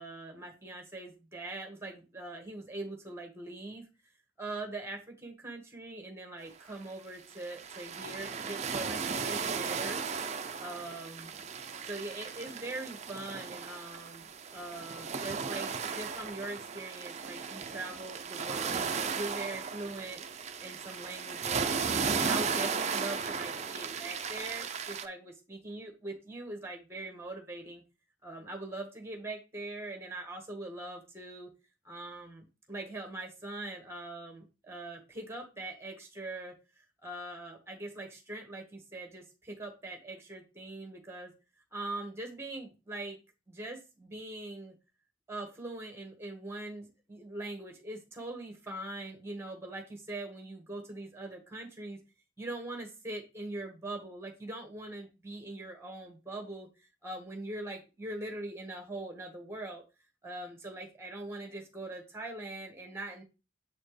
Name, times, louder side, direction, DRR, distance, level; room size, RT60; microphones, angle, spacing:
voice 1, 0.0-3.9 4.4-10.0 10.6-11.4 11.9-20.2 20.6-27.8 28.2-31.5 31.8-36.5 37.0-41.3 41.7-43.2 43.5-44.7 45.3-52.0 52.4-59.8 60.2-63.2, right 2 dB, 15° right, 3 dB, 1.4 m, -42 dB
sound 1, 6.8-6.9 7.3-25.1, right 5 dB, 35° right, 0.5 m, -35 dB
7.3 x 4.3 x 3.2 m, 0.28 s
head